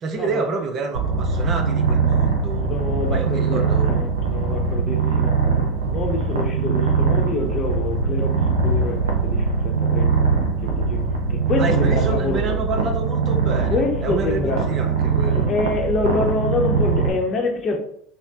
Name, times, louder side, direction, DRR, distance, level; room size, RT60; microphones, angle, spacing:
voice 1, 0.0-2.6 3.1-3.9 11.6-15.5, right 4 dB, 45° right, 0.6 m, -28 dB
Purr, 0.9-17.1, right 5 dB, 90° right, 0.6 m, -21 dB
voice 2, 2.7-3.6 3.9-5.4 5.9-10.1 10.6-11.0 11.3-12.4 13.6-14.7 15.5-17.8, left 3 dB, 40° left, 0.8 m, -26 dB
5.1 x 2.1 x 2.7 m
hypercardioid pair, 80°, 0 cm